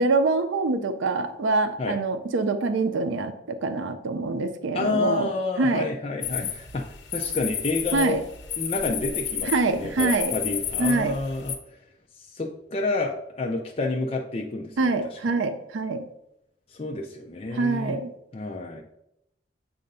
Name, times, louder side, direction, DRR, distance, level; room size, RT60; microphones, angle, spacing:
voice 1, 0.0-5.3 5.6-5.9 7.9-8.2 9.4-10.4 10.8-11.2 14.8-16.1 17.5-18.1, right 3 dB, 90° right, 9 dB, 0.5 m, -25 dB
voice 2, 4.7-6.8 7.1-8.2 8.6-11.5 12.2-15.2 16.7-18.0 18.3-18.8, left 3 dB, 30° left, 0 dB, 0.4 m, -29 dB
sound 1, 6.2-11.6, left 8 dB, 80° left, 0.8 m, -31 dB
7.6 x 2.5 x 5.3 m, 0.82 s
head